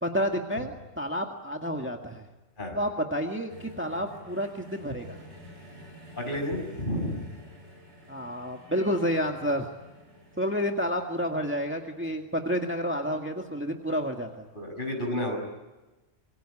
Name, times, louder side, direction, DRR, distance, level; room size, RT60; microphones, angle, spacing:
voice 1, 0.0-2.2 2.7-5.2 8.1-9.7 10.4-14.5, equal, 10° right, 2 dB, 1.9 m, -30 dB
sound 1, 3.5-13.7 14.6-14.7, equal, 60° right, 7.7 m, -51 dB
voice 2, 6.2-7.3 14.5-15.4, left 1 dB, 40° left, 3 dB, 6.4 m, -31 dB
26.5 x 22.5 x 9.9 m, 1.1 s
omnidirectional pair, 1.3 m